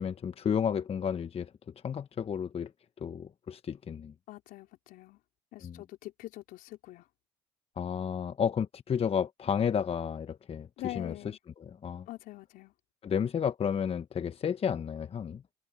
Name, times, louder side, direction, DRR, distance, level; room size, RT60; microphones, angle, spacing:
voice 1, 0.0-1.5 1.8-2.7 3.0-4.1 5.6-5.8 7.8-12.1 13.0-15.4, left 7 dB, 40° left, 1.1 m, -32 dB
voice 2, 4.3-5.2 5.5-7.1 10.8-11.4 12.1-12.7, left 16 dB, 70° left, 4.0 m, -43 dB
hypercardioid pair, 60°, 15 cm